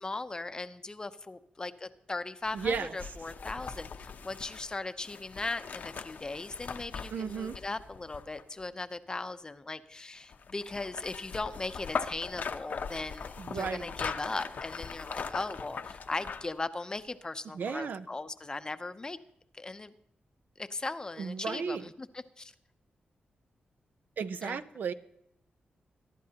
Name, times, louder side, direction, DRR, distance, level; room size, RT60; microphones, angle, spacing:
voice 1, 0.0-19.2 19.5-19.9 20.6-22.5 24.4-24.6, left 3 dB, 25° left, 10 dB, 0.7 m, -38 dB
sound 1, 2.4-8.6 10.3-16.6 17.0-17.1, left 5 dB, 60° left, 0.8 m, -40 dB
voice 2, 2.5-3.0 7.1-7.6 13.4-13.9 17.5-18.1 21.2-21.9 24.2-24.9, right 6 dB, 70° right, 11 dB, 0.7 m, -34 dB
23.0 x 12.0 x 2.9 m, 0.75 s
wide cardioid pair, 120°, 3 cm